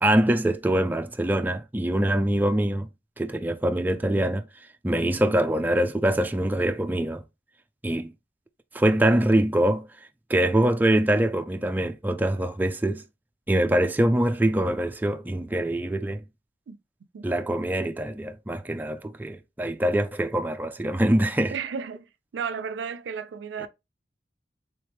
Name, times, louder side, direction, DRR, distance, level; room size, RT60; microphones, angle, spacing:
voice 1, 0.0-2.9 3.2-4.4 4.8-7.2 7.8-8.1 8.7-9.9 10.3-13.0 13.5-16.2 17.2-21.5, right 1 dB, 10° right, 0.3 m, -24 dB
voice 2, 21.5-22.1 22.3-23.7, right 6 dB, 90° right, 0.4 m, -33 dB
3.5 x 2.9 x 3.4 m
head